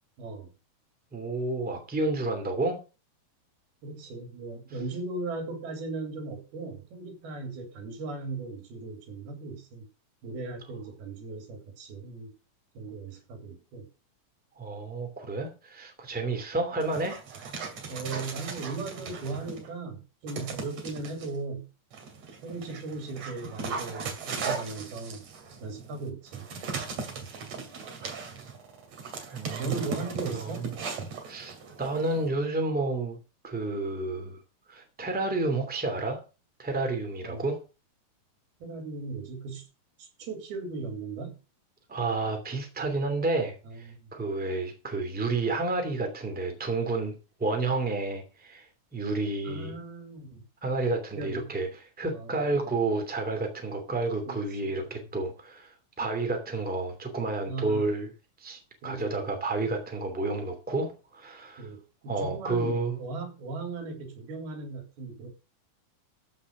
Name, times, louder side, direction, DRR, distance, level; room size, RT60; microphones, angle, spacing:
voice 1, 0.2-0.5 3.8-9.9 10.2-12.3 12.7-13.9 17.9-21.7 22.4-25.2 25.6-26.5 29.6-30.7 37.2-37.5 38.6-39.7 40.0-41.3 43.6-44.1 49.4-50.4 51.2-51.5 52.0-52.7 54.3-55.3 57.5-57.9 58.8-59.4 61.6-65.3, right 3 dB, 85° right, 5.0 m, -38 dB
voice 2, 1.1-2.8 14.6-17.2 29.3-29.8 30.2-30.7 31.3-33.2 33.4-34.4 34.7-36.2 36.6-37.6 41.9-47.1 47.4-48.7 48.9-49.7 50.6-51.7 52.0-55.7 56.0-58.1 58.4-61.7 62.1-63.0, right 3 dB, 5° right, 2.1 m, -30 dB
Dog, 16.8-19.7 20.3-21.3 21.9-32.3, right 5 dB, 50° right, 3.4 m, -38 dB
14.5 x 5.6 x 6.1 m
omnidirectional pair, 4.3 m